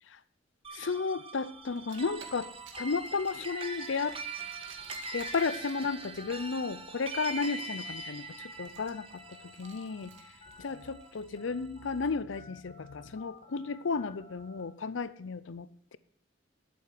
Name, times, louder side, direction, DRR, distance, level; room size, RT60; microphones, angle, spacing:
sound 1, 0.6-11.3, right 3 dB, 30° right, 1.4 m, -42 dB
voice 1, 0.7-2.5 2.8-4.2 5.1-16.0, left 4 dB, 85° left, 16 dB, 0.6 m, -34 dB
sound 2, 0.9-11.1 11.4-14.6, left 4 dB, 30° left, 1.8 m, -55 dB
Car, 1.7-11.2, equal, 85° right, 2.3 m, -50 dB
12.0 x 8.5 x 6.0 m, 0.62 s
head